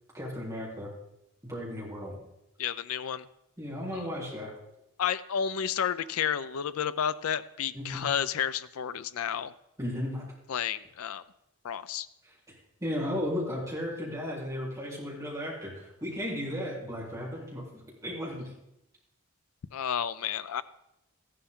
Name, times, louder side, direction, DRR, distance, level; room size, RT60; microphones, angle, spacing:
voice 1, 0.1-0.9 1.4-2.2 3.6-4.5 7.7-8.1 9.8-10.3 12.2-12.3 12.8-18.5, left 1 dB, 15° right, -5 dB, 3.7 m, -35 dB
voice 2, 2.6-3.3 3.9-4.0 5.0-9.5 10.5-11.2 11.6-12.1 19.7-20.6, left 8 dB, 85° left, 13 dB, 0.4 m, -31 dB
14.5 x 11.5 x 3.7 m, 0.86 s
head